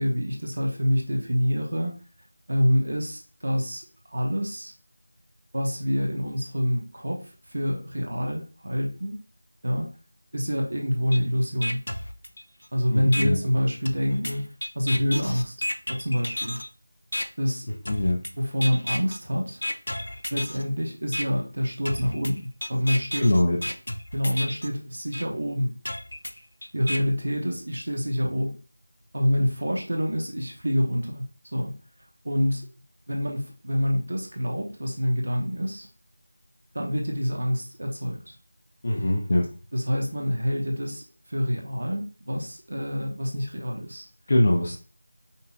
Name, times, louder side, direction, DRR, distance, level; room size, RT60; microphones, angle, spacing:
voice 1, 0.0-2.0 2.5-3.8 4.1-4.7 5.5-9.2 9.6-9.9 10.3-11.8 12.7-14.4 14.7-15.5 15.9-16.6 17.4-17.7 18.4-19.6 20.3-23.2 24.1-25.7 26.7-28.6 29.1-31.2 31.5-31.7 32.2-32.7 33.1-35.9 36.7-38.3 39.7-44.1, equal, 60° right, 0 dB, 0.8 m, -26 dB
sound 1, 11.1-11.2 11.6-12.7 13.1-13.3 13.9-16.7 17.1-17.3 17.9-18.3 18.6-19.2 19.6-20.6 21.1-21.2 21.9-24.7 25.1-25.2 25.9-27.0, left 1 dB, 80° left, 0.5 m, -32 dB
voice 2, 12.9-13.4 17.9-18.2 23.1-23.6 38.8-39.4 44.3-44.8, left 1 dB, 30° left, -2 dB, 0.4 m, -22 dB
5.3 x 2.1 x 2.5 m, 0.35 s
figure-of-eight pair, 180°, 0 cm